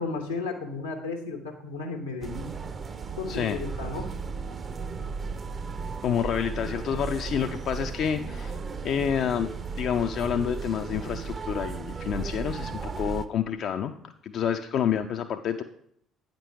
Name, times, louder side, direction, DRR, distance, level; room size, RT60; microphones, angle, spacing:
voice 1, 0.0-2.6 3.2-4.1, left 3 dB, 85° left, 4 dB, 1.1 m, -34 dB
sound 1, 2.2-13.3, right 5 dB, 35° right, 0.6 m, -35 dB
voice 2, 3.3-3.6 6.0-8.6 8.8-9.5 9.8-13.9 14.2-15.6, left 8 dB, 55° left, 6 dB, 0.4 m, -28 dB
8.8 x 5.2 x 4.6 m, 0.69 s
figure-of-eight pair, 50°, 0 cm